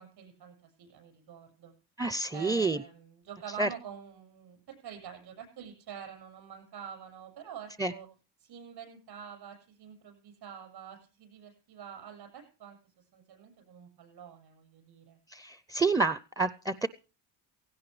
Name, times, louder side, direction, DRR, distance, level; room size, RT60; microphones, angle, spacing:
voice 1, 0.0-1.7 2.3-8.1 8.4-15.2, right 8 dB, 65° right, 7 dB, 6.8 m, -47 dB
voice 2, 2.0-2.8 3.6-3.7 7.8-7.9 15.3-16.9, right 3 dB, 10° right, 14 dB, 0.6 m, -28 dB
17.0 x 16.0 x 3.3 m, 0.35 s
supercardioid pair, 80°, 43 cm